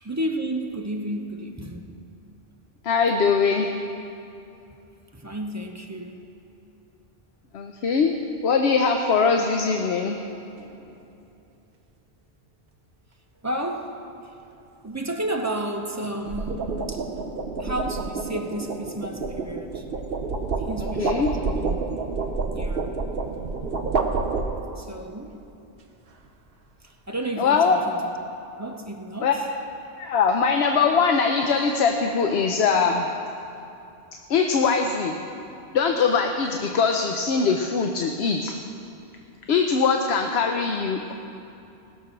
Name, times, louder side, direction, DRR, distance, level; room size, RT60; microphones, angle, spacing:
voice 1, 0.0-2.0 5.1-6.2 13.4-13.9 14.8-17.1 17.6-19.8 20.7-21.8 22.5-22.9 24.8-25.4 27.1-28.0 28.6-29.3, right 1 dB, 15° right, 2 dB, 0.8 m, -32 dB
voice 2, 2.8-3.7 7.5-8.1 8.4-10.2 20.8-21.3 27.4-27.8 29.2-29.3 30.0-33.1 34.3-35.2 35.7-38.5 39.5-41.1, left 5 dB, 75° left, 3 dB, 1.0 m, -22 dB
sound 1, 10.6-10.9 16.0-24.9, right 4 dB, 60° right, 1.1 m, -29 dB
19.0 x 6.8 x 5.9 m, 2.7 s
omnidirectional pair, 1.1 m